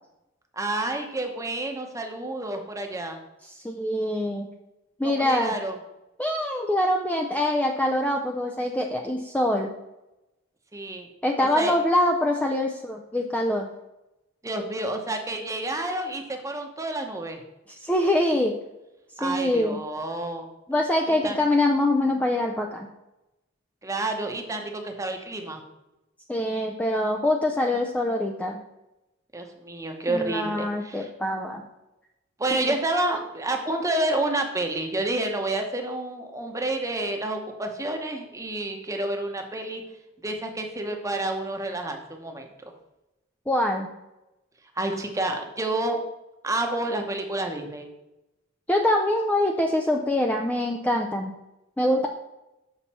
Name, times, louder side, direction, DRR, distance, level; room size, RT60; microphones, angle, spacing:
voice 1, 0.5-3.2 5.0-5.8 10.7-11.1 11.4-11.8 14.4-17.4 19.2-20.5 21.1-21.4 23.8-25.6 29.3-31.1 32.4-39.8 40.2-42.5 44.8-46.0 46.4-47.9, right 2 dB, 15° right, 4 dB, 0.9 m, -29 dB
voice 2, 3.6-4.5 5.0-5.6 6.2-9.7 11.2-13.7 17.8-18.6 19.2-19.8 20.7-22.9 26.3-28.6 30.1-31.6 43.5-43.9 48.7-51.3 51.8-52.1, left 1 dB, 5° left, 2 dB, 0.4 m, -24 dB
7.2 x 5.6 x 4.3 m, 0.94 s
head